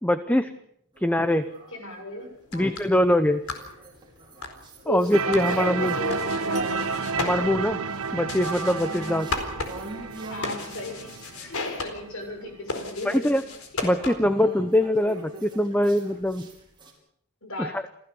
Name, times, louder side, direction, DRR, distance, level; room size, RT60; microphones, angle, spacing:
voice 1, 0.0-0.5 1.0-1.5 2.5-3.4 4.9-5.9 7.2-7.8 8.1-9.3 13.0-13.4 13.8-16.5 17.6-17.9, left 1 dB, 5° left, 10 dB, 0.8 m, -23 dB
sound 1, 1.0-2.3 2.9-11.8 12.2-16.9, right 2 dB, 20° right, 5.6 m, -44 dB
voice 2, 1.7-2.7 4.9-6.8 10.3-13.5 17.4-17.8, left 1 dB, 65° left, 5 dB, 6.7 m, -35 dB
sound 2, 2.3-14.4, left 3 dB, 85° left, 4.3 m, -37 dB
sound 3, 5.1-11.9, right 4 dB, 85° right, 1.3 m, -31 dB
29.0 x 16.0 x 7.0 m, 0.72 s
head